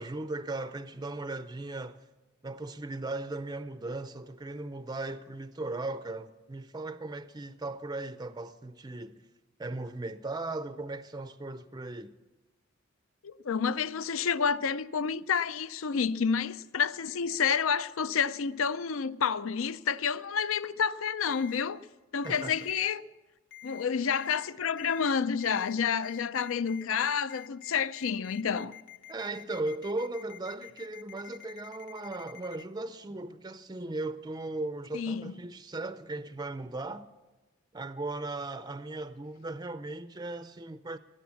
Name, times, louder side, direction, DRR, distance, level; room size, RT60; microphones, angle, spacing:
voice 1, 0.0-2.0 2.4-9.3 9.6-12.2 22.2-22.6 29.1-37.1 37.7-41.0, right 2 dB, 20° right, 0.5 m, -37 dB
voice 2, 13.2-21.8 22.1-23.0 23.6-28.7 34.9-35.3, left 6 dB, 75° left, 0.5 m, -29 dB
Ringtone, 21.3-21.6 22.2-22.9 23.5-23.8 24.1-24.5 24.8-25.1 25.4-25.7 26.0-32.6, left 14 dB, 55° left, 1.1 m, -48 dB
19.0 x 10.5 x 7.1 m
head